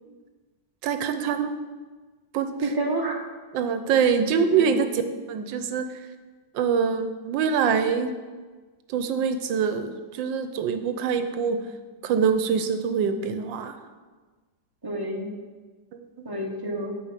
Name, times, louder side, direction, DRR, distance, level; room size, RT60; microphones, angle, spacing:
voice 1, 0.8-1.5 2.3-2.5 3.5-4.9 5.3-5.8 6.5-8.1 8.9-11.6 12.0-13.7 15.9-16.3, right 6 dB, 80° right, 8 dB, 1.4 m, -24 dB
voice 2, 2.6-3.2 4.5-4.7 14.8-15.3 16.2-17.0, right 2 dB, 15° right, -1 dB, 0.9 m, -29 dB
7.5 x 5.0 x 7.3 m, 1.4 s
omnidirectional pair, 2.0 m